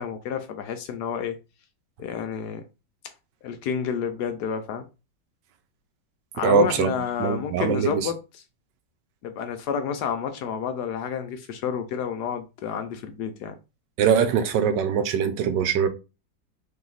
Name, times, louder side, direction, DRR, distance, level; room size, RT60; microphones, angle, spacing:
voice 1, 0.0-1.4 2.0-2.6 3.4-4.9 6.3-8.2 9.2-13.6, left 7 dB, 70° left, 1.0 m, -30 dB
voice 2, 6.4-6.9 7.2-8.1 14.0-15.9, right 7 dB, 75° right, 1.2 m, -22 dB
3.3 x 3.0 x 3.8 m
omnidirectional pair, 2.0 m